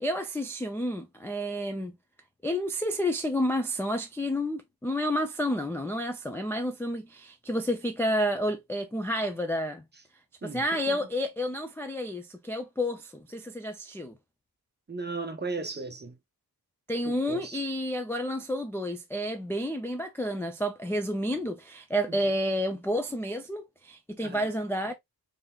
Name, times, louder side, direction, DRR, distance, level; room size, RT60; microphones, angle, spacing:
voice 1, 0.0-1.9 2.4-9.8 10.4-14.1 16.9-24.9, equal, 5° left, 0.3 m, -30 dB
voice 2, 10.4-11.0 14.9-16.1 17.1-17.6 22.1-22.2 24.2-24.5, right 3 dB, 25° right, 0.7 m, -36 dB
3.8 x 3.3 x 2.3 m
wide cardioid pair, 175°, 39 cm